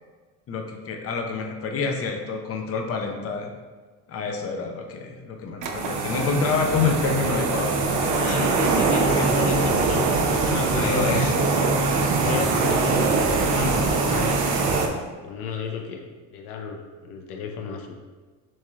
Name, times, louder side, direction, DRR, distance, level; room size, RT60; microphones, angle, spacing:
voice 1, 0.5-3.5 4.1-8.8 9.1-9.6 10.7-11.3, left 4 dB, 30° left, 3 dB, 0.7 m, -28 dB
sound 1, 5.6-14.9, right 3 dB, 40° right, 0.8 m, -22 dB
voice 2, 8.2-11.3 11.8-14.3 14.6-14.9 15.2-18.0, left 4 dB, 75° left, 3 dB, 0.7 m, -33 dB
7.4 x 2.9 x 2.4 m, 1.4 s
hypercardioid pair, 75°, 45 cm